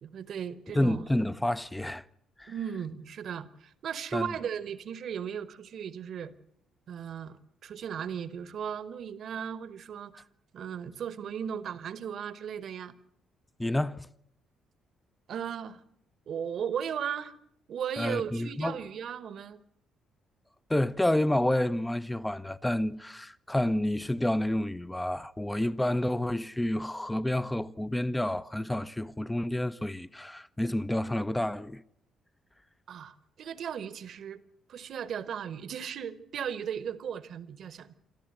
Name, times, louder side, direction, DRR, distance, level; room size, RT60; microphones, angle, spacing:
voice 1, 0.0-1.0 2.5-6.3 6.9-10.3 10.5-12.9 15.3-15.8 16.3-17.3 17.7-19.6 32.9-34.4 34.7-37.9, right 8 dB, 55° right, 1.1 m, -36 dB
voice 2, 0.7-2.0 2.4-2.5 4.1-4.3 13.6-14.1 18.0-18.8 20.7-31.8, left 1 dB, 10° left, 0.7 m, -29 dB
26.0 x 13.5 x 7.7 m
figure-of-eight pair, 45°, 0 cm